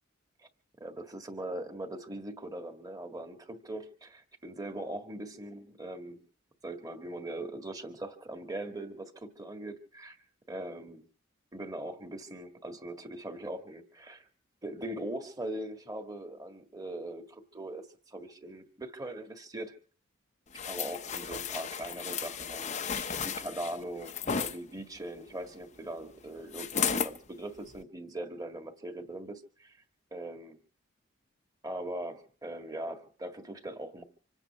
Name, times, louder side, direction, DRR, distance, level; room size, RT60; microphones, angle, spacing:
voice 1, 0.8-6.2 6.6-10.2 10.5-11.0 11.5-14.3 14.6-19.7 20.7-29.8 30.1-30.5 31.6-34.0, right 1 dB, 20° right, 4 dB, 1.7 m, -41 dB
sound 1, 20.5-24.6 26.5-27.2 27.7-27.8, left 6 dB, 35° left, 0.7 m, -34 dB
26.0 x 8.9 x 5.7 m, 0.43 s
head